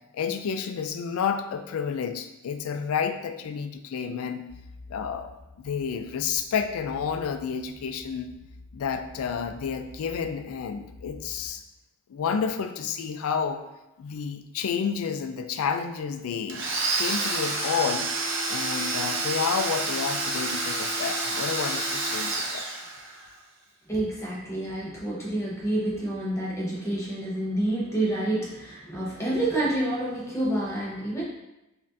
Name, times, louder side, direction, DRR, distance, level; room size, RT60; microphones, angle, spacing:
voice 1, 0.1-4.5 4.9-5.3 5.6-8.3 8.7-11.6 12.1-13.6 14.0-16.7 16.9-18.1 18.5-22.7, left 6 dB, 75° left, 9 dB, 0.3 m, -30 dB
sound 1, 4.5-11.6, left 3 dB, 50° left, 1.0 m, -49 dB
Domestic sounds home sounds, 16.5-23.3, right 3 dB, 55° right, 0.6 m, -29 dB
voice 2, 23.9-31.2, right 1 dB, 15° left, -5 dB, 0.9 m, -28 dB
5.2 x 2.6 x 2.5 m, 0.96 s
head